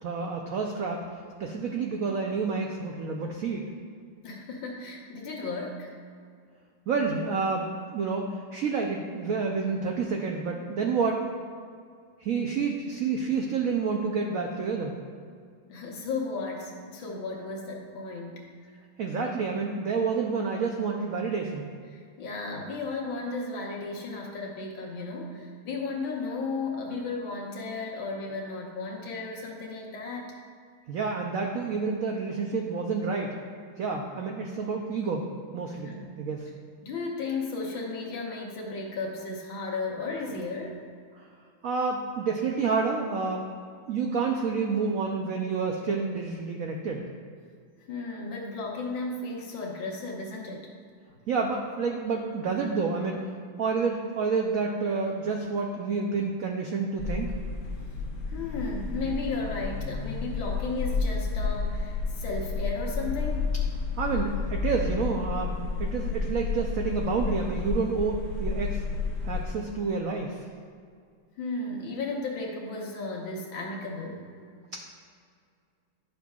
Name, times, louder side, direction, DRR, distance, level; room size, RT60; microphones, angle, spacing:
voice 1, 0.0-1.0 1.4-3.6 6.9-11.3 12.2-15.0 19.0-21.7 30.9-33.3 33.8-35.3 35.5-36.5 41.6-43.4 43.9-47.0 51.3-53.2 53.6-57.3 64.0-68.8 69.2-70.4 74.7-74.8, right 4 dB, 85° right, 1 dB, 0.7 m, -29 dB
voice 2, 4.2-6.0 15.7-18.8 21.9-30.3 35.7-36.1 36.8-40.8 47.9-50.7 58.3-63.5 71.4-74.5, left 3 dB, 80° left, -1 dB, 1.9 m, -34 dB
sound 1, 57.0-69.5, left 4 dB, 50° left, 1.1 m, -31 dB
11.0 x 6.4 x 2.3 m, 2.2 s
omnidirectional pair, 2.2 m